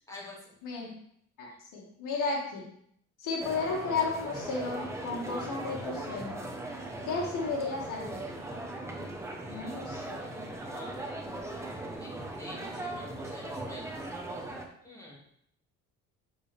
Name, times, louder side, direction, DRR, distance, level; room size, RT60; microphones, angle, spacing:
voice 1, 0.1-0.6 9.5-9.8 10.6-11.0 12.0-14.0 14.8-15.2, left 2 dB, 10° left, -4 dB, 2.5 m, -48 dB
voice 2, 0.6-0.9 1.4-2.7 3.2-6.4 7.1-8.2 9.5-10.2, left 4 dB, 65° left, -3 dB, 2.1 m, -33 dB
sound 1, 3.4-14.7, right 1 dB, 10° right, 1.1 m, -39 dB
7.0 x 4.5 x 3.5 m, 0.69 s
supercardioid pair, 85°, 33 cm